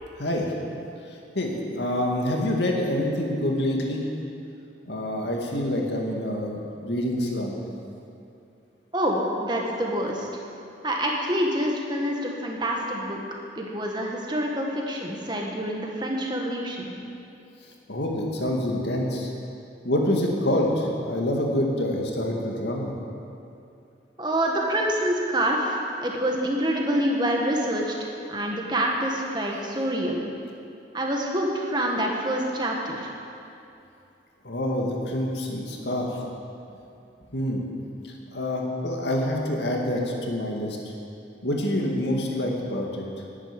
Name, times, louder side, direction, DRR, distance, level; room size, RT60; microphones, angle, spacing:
voice 1, 0.2-0.5 1.4-4.0 4.9-7.6 17.9-19.3 19.8-22.9 34.4-36.1 37.3-37.6 38.3-40.8 41.4-43.0, left 1 dB, 75° left, 0 dB, 2.1 m, -26 dB
voice 2, 8.9-10.3 10.8-13.2 13.5-16.9 24.2-27.9 28.3-30.2 30.9-33.1, right 1 dB, 25° right, 0 dB, 1.7 m, -26 dB
10.5 x 9.8 x 9.2 m, 2.6 s
head